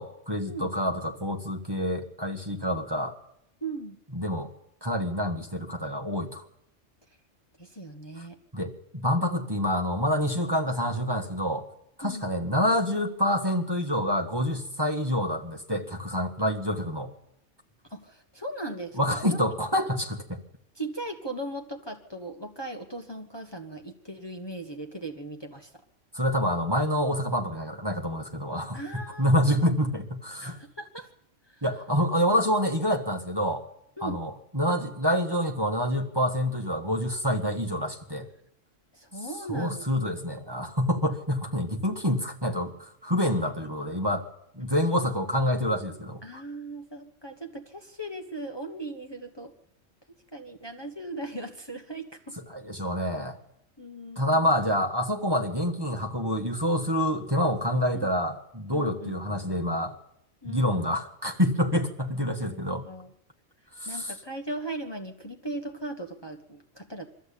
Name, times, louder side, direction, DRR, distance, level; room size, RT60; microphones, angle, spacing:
voice 1, 0.0-3.1 4.1-4.5 4.8-6.4 8.5-11.7 12.0-17.1 19.0-20.4 26.1-28.8 29.2-30.6 31.6-33.6 34.0-38.3 39.5-44.3 44.5-46.4 52.5-53.4 54.2-59.9 60.4-62.8 63.7-64.1, equal, 20° right, 3 dB, 1.6 m, -27 dB
voice 2, 3.6-4.0 7.6-8.4 12.0-12.3 17.8-19.4 20.7-25.7 28.7-29.7 30.4-31.1 31.5-31.6 34.0-34.2 38.9-39.9 46.2-49.5 50.3-52.4 53.8-54.5 57.9-58.1 58.7-59.2 60.4-61.0 62.4-63.1 63.8-67.1, right 2 dB, 20° left, 5 dB, 1.4 m, -38 dB
23.0 x 14.0 x 8.5 m, 0.77 s
omnidirectional pair, 1.3 m